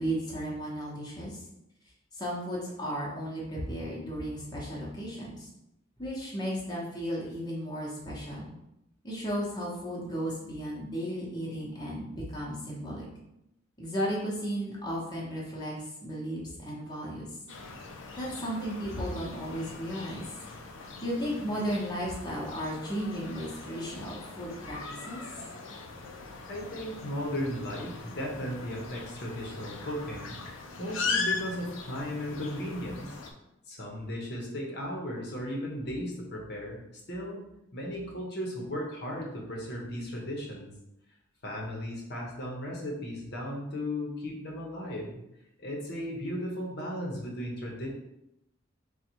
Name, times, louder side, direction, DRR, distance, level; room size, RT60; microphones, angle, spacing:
voice 1, 0.0-1.4 2.1-5.5 6.0-8.5 9.0-13.0 13.8-15.7 16.0-17.3 18.2-20.2 21.0-24.8 25.1-25.2, equal, 20° left, -5 dB, 0.9 m, -34 dB
sound 1, 17.5-33.3, left 4 dB, 80° left, 0.5 m, -39 dB
voice 2, 26.5-33.2 33.7-36.8 37.1-37.4 37.7-40.7 41.4-45.2 45.6-47.9, equal, 55° left, -2 dB, 0.9 m, -36 dB
3.9 x 2.3 x 4.5 m, 0.86 s
head